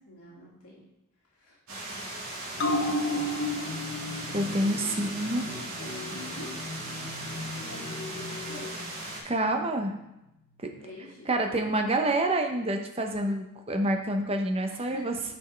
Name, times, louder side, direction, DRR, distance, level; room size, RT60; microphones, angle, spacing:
voice 1, 0.1-0.8 1.3-1.6 2.8-3.2 4.6-4.9 5.4-6.5 7.2-8.8 10.8-11.9 14.7-15.0, left 1 dB, 80° left, -6 dB, 2.2 m, -46 dB
sound 1, 1.7-9.2, right 1 dB, 70° right, 2.0 m, -38 dB
sound 2, 2.6-9.5 9.8-9.9, left 1 dB, 55° left, 0.9 m, -34 dB
voice 2, 4.3-5.5 9.2-9.9 11.3-15.1, right 1 dB, 25° right, 4 dB, 0.8 m, -27 dB
9.2 x 5.3 x 3.3 m, 0.90 s
head